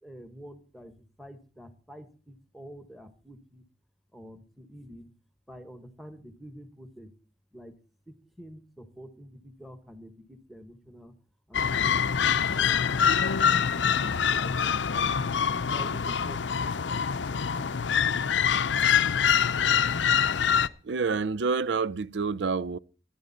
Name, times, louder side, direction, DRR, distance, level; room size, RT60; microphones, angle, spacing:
voice 1, 0.0-3.6 4.1-5.1 5.5-7.1 7.5-7.7 8.1-11.1 11.5-12.8 13.2-15.3 15.7-17.0 17.3-18.2 20.0-20.1, equal, ahead, 1.5 m, -48 dB
sound 1, 11.5-20.7, left 7 dB, 80° left, 0.6 m, -25 dB
voice 2, 20.8-22.8, right 4 dB, 75° right, 0.5 m, -28 dB
15.5 x 11.5 x 4.2 m
head